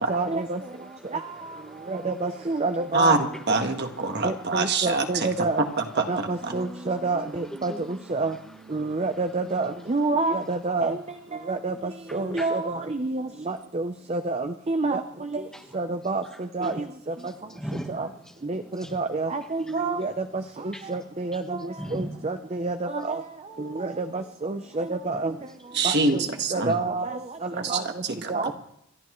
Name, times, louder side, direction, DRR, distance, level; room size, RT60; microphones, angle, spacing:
voice 1, 0.1-0.6 1.9-3.2 4.2-5.6 6.1-7.7 8.1-8.3 8.7-11.0 11.5-11.7 12.1-15.0 15.7-16.2 16.6-16.7 18.0-18.1 18.5-18.6 18.9-20.1 20.9-21.4 21.9-23.2 23.8-24.0 24.4-25.3 25.8-25.9 26.5-27.1 27.7-27.8 28.3-28.5, right 3 dB, 30° right, 7 dB, 0.6 m, -27 dB
voice 2, 0.7-2.6 3.6-5.4 6.5-6.9 7.5-8.0 8.3-8.4 8.8-9.0 9.3-9.7 12.1-12.6 15.5-15.8 16.3-16.8 17.2-19.0 19.7-19.8 20.7-21.0 21.3-21.4 21.8-22.2 25.1-25.2 26.0-26.1, equal, 5° left, 4 dB, 1.3 m, -42 dB
voice 3, 2.9-5.3 6.0-6.5 25.7-26.7 27.6-28.3, right 3 dB, 50° right, 5 dB, 1.5 m, -25 dB
28.0 x 11.5 x 3.1 m, 0.78 s
head